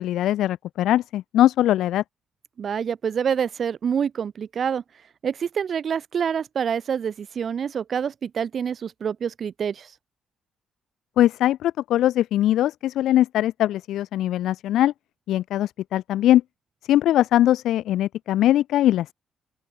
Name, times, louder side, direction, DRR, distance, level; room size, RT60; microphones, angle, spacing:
voice 1, 0.0-2.0 11.2-14.9 15.3-16.4 16.9-19.1, left 13 dB, 80° left, 0.5 m, -21 dB
voice 2, 2.6-4.8 5.2-9.9, right 7 dB, 50° right, 0.6 m, -26 dB
open air
cardioid pair, 105°, 0 cm